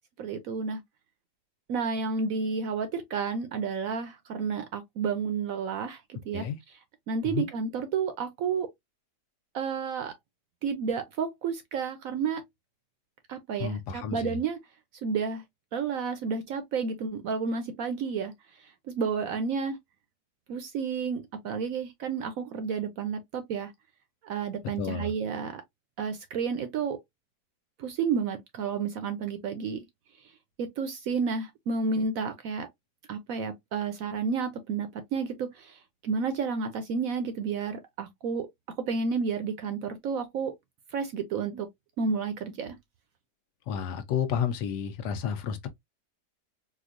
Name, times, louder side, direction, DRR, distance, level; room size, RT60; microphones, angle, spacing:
voice 1, 0.2-0.8 1.7-6.5 7.1-8.7 9.5-10.1 10.6-12.4 13.3-14.6 15.0-15.4 15.7-18.3 18.9-19.8 20.5-23.7 24.2-25.6 26.0-27.0 27.8-29.8 30.6-32.7 33.1-38.5 38.9-40.5 40.9-41.7 42.0-42.8, right 5 dB, 70° right, 0.9 m, -31 dB
voice 2, 13.6-14.4 24.8-25.1 43.7-45.7, left 7 dB, 80° left, 1.2 m, -31 dB
4.3 x 2.3 x 2.4 m
omnidirectional pair, 1.8 m